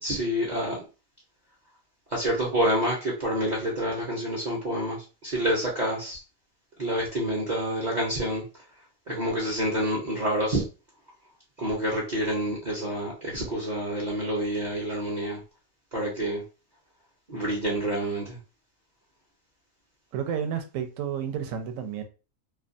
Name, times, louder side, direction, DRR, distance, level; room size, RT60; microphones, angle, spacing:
voice 1, 0.0-0.8 2.1-6.2 6.8-8.4 9.1-10.6 11.6-15.4 15.9-16.4 17.3-18.4, right 1 dB, 45° right, 0.6 m, -28 dB
voice 2, 20.1-22.0, right 8 dB, 75° right, 0.9 m, -31 dB
2.4 x 2.2 x 2.5 m
omnidirectional pair, 1.4 m